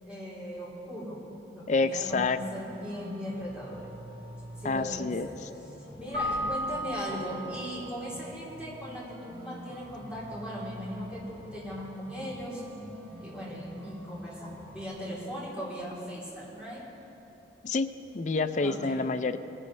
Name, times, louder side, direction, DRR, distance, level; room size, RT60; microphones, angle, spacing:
voice 1, 0.0-1.2 1.5-3.9 4.6-5.3 5.8-12.6 13.2-16.9 18.6-19.0, equal, 5° right, -8 dB, 3.3 m, -38 dB
voice 2, 1.7-2.4 4.6-5.5 17.6-19.4, left 3 dB, 40° left, 10 dB, 0.4 m, -28 dB
sound 1, 2.1-14.9, equal, 50° right, 2.2 m, -47 dB
Keyboard (musical), 6.1-7.9, equal, 70° right, 3.1 m, -34 dB
20.0 x 12.0 x 3.2 m, 3.0 s
head